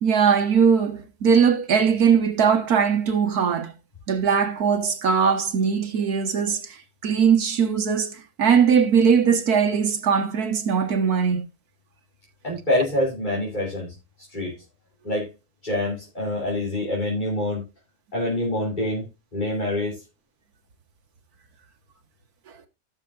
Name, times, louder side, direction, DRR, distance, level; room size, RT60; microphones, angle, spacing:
voice 1, 0.0-3.7 4.1-6.8 7.0-11.4, right 6 dB, 75° right, 1.9 m, -20 dB
voice 2, 12.4-13.9 14.3-14.5 15.0-15.3 15.6-17.6 18.1-19.1 19.3-20.0, left 1 dB, 30° left, 3.6 m, -26 dB
17.5 x 6.9 x 2.5 m
omnidirectional pair, 1.6 m